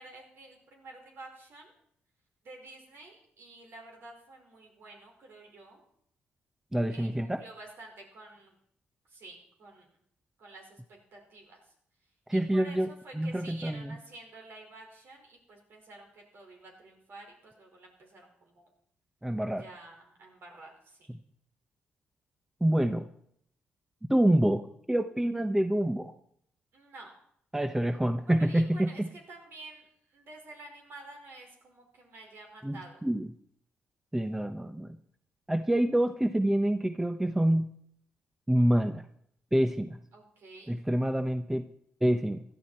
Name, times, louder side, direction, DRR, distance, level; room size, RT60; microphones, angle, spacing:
voice 1, 0.0-1.7 2.4-5.8 6.9-8.5 9.1-9.9 10.4-10.8 11.1-11.6 12.3-18.6 19.6-21.1 26.7-27.1 28.2-29.0 29.3-33.0 40.1-40.8, right 2 dB, 65° right, 1 dB, 5.1 m, -50 dB
voice 2, 6.7-7.4 12.3-12.9 13.1-14.0 19.2-19.6 22.6-23.0 24.1-26.1 27.5-29.1 32.6-33.3 34.1-35.0 35.5-37.7 38.5-39.0 39.5-40.0 40.7-41.7 42.0-42.4, right 1 dB, 10° right, 9 dB, 0.9 m, -27 dB
17.0 x 12.5 x 4.4 m, 0.68 s
cardioid pair, 65°, 4 cm